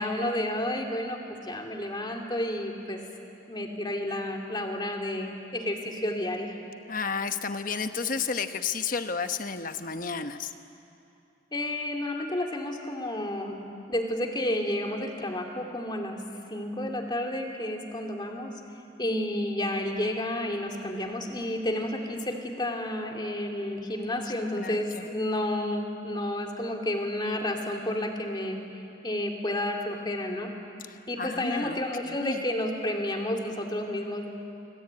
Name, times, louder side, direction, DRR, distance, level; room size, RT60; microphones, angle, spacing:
voice 1, 0.0-3.0 3.5-6.6 11.5-16.2 16.5-18.5 19.0-28.6 29.0-30.5 31.1-34.3, left 1 dB, 25° left, 2 dB, 2.5 m, -31 dB
voice 2, 6.9-10.5 24.4-25.1 30.9-32.4, left 5 dB, 45° left, 8 dB, 1.1 m, -32 dB
25.5 x 24.5 x 8.8 m, 2.8 s
head